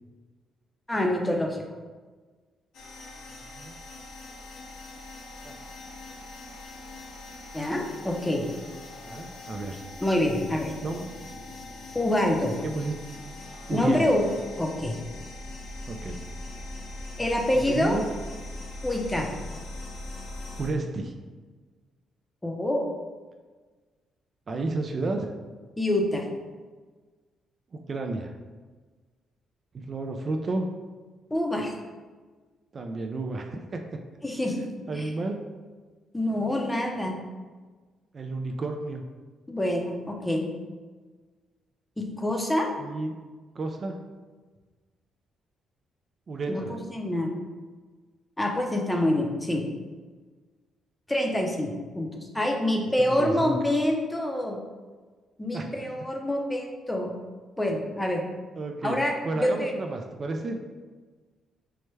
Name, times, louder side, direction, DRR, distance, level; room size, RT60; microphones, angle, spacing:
voice 1, 0.9-1.6 7.5-8.4 10.0-10.7 11.9-12.5 13.7-14.3 14.6-15.0 17.2-18.0 18.8-19.3 22.4-22.9 25.8-26.2 31.3-31.7 34.2-34.7 34.9-35.1 36.1-37.2 39.5-40.4 42.0-42.7 46.5-47.3 48.4-49.6 51.1-54.6 55.4-57.1 57.6-58.2 58.8-59.7, left 1 dB, 10° left, 1 dB, 0.6 m, -26 dB
sound 1, 2.7-20.7, left 2 dB, 75° left, 0.8 m, -41 dB
voice 2, 3.3-3.8 5.4-5.5 9.1-9.8 10.8-11.1 12.6-12.9 13.7-14.1 15.9-16.2 17.7-18.1 20.6-21.1 24.5-25.3 27.7-28.3 29.7-30.7 32.7-33.8 34.9-35.4 38.1-39.0 42.8-43.1 43.5-44.0 46.3-46.8 53.0-53.6 55.5-55.7 58.6-59.0 59.2-60.6, right 2 dB, 40° right, 4 dB, 0.3 m, -31 dB
4.5 x 2.1 x 3.2 m, 1.4 s
cardioid pair, 90°, 0 cm